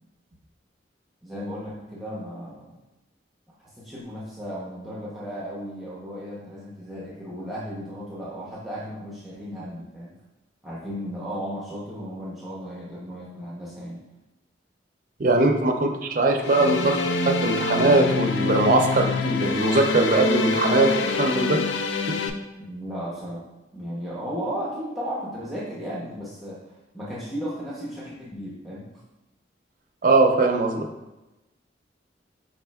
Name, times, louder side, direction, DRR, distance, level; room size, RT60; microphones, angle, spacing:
voice 1, 1.2-2.8 3.6-10.1 10.6-14.0 22.6-23.4 23.7-28.9, equal, ahead, -7 dB, 0.6 m, -35 dB
voice 2, 15.2-17.0 17.2-21.6 22.1-22.2 30.0-30.9, right 2 dB, 50° right, 3 dB, 0.5 m, -21 dB
sound 1, 16.4-22.3, left 3 dB, 85° left, 0.4 m, -26 dB
4.9 x 4.3 x 2.2 m, 1.0 s
head